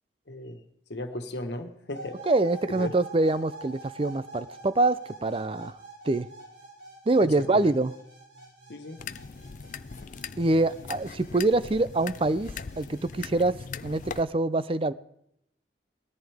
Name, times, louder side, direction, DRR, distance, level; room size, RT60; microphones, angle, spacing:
voice 1, 0.3-0.6 0.9-2.2 2.7-2.9 7.2-7.8 8.7-9.0, left 1 dB, 75° left, 7 dB, 1.5 m, -36 dB
sound 1, 1.9-13.1, right 2 dB, 80° right, 7.8 m, -46 dB
voice 2, 2.3-5.7 6.1-6.3 7.1-7.9 10.4-13.6 13.8-14.9, right 2 dB, 30° right, 15 dB, 0.5 m, -25 dB
sound 2, 9.0-14.2, left 5 dB, 45° left, 0.4 m, -40 dB
19.0 x 14.0 x 3.6 m, 0.74 s
head